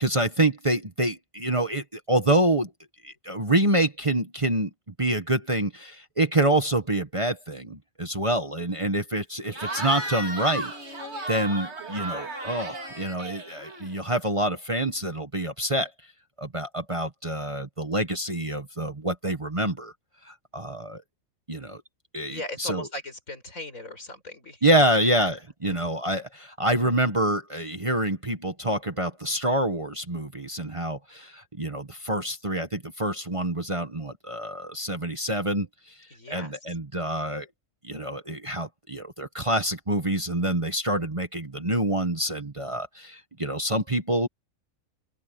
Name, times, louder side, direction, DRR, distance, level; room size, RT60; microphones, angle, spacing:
voice 1, 0.0-2.7 3.0-4.7 5.0-10.7 11.3-15.9 16.4-19.9 20.2-21.0 21.5-21.8 22.1-22.9 24.6-35.7 36.3-37.5 37.8-44.3, right 1 dB, 25° right, 1.3 m, -26 dB
Cheering / Crowd, 9.5-14.1, right 2 dB, 50° right, 3.5 m, -34 dB
voice 2, 22.3-24.6 25.2-25.3 25.7-25.9 36.1-36.6, left 1 dB, 70° left, 6.5 m, -38 dB
open air
omnidirectional pair, 1.4 m